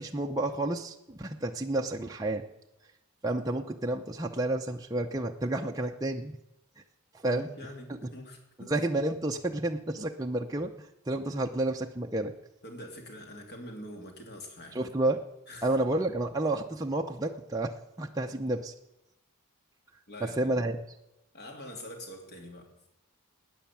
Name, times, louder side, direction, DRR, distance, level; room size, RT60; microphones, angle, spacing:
voice 1, 0.0-2.4 3.2-6.4 7.1-7.5 7.9-8.0 8.7-12.3 14.7-15.2 15.6-18.7 20.2-20.8, right 2 dB, 15° right, 2 dB, 0.6 m, -30 dB
voice 2, 7.2-8.8 12.6-14.8 15.5-15.8 20.1-20.7 21.3-22.7, left 1 dB, 45° left, 3 dB, 2.9 m, -45 dB
13.0 x 9.3 x 8.8 m, 0.90 s
head